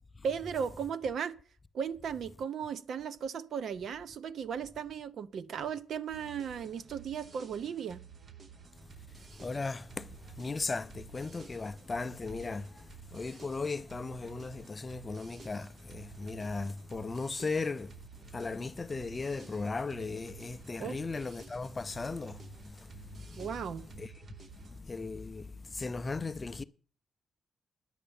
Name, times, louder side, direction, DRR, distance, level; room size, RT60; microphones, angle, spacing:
voice 1, 0.2-1.4 1.7-8.0 20.8-21.0 23.3-23.8, right 7 dB, 60° right, 0.7 m, -36 dB
sound 1, 6.1-24.8, right 6 dB, 40° right, 0.9 m, -53 dB
voice 2, 9.4-10.1 10.4-12.7 13.1-17.9 18.3-22.4 22.9-23.0 23.9-24.1 24.8-26.6, left 3 dB, 25° left, 0.4 m, -36 dB
10.0 x 6.6 x 8.7 m
wide cardioid pair, 155°, 0 cm